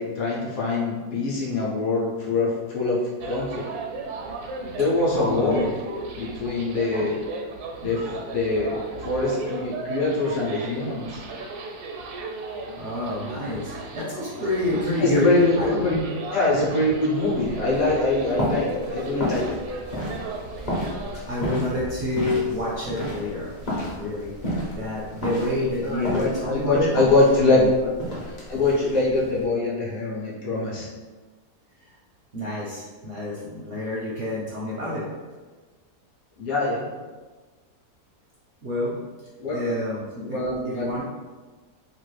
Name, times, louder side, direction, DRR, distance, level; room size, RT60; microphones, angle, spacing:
voice 1, 0.0-3.6 4.7-5.7 6.2-7.2 7.8-8.0 8.3-11.2 12.7-12.8 15.0-15.5 15.8-16.0 16.3-19.6 25.8-27.9 28.5-30.9 36.4-36.8 39.4-39.6 40.2-40.9, left 2 dB, 65° left, -6 dB, 1.2 m, -23 dB
sound 1, 3.2-21.2, right 3 dB, 80° right, 1.1 m, -36 dB
voice 2, 5.1-5.7 6.9-7.1 7.8-7.9 12.4-16.0 21.3-24.4 24.7-27.1 27.4-27.7 31.8-31.9 32.3-35.1 38.6-39.0 39.5-41.1, left 1 dB, 65° right, -5 dB, 0.7 m, -28 dB
sound 2, 17.2-29.4, equal, 40° left, 0.6 m, -32 dB
3.0 x 2.4 x 3.2 m, 1.3 s
omnidirectional pair, 1.7 m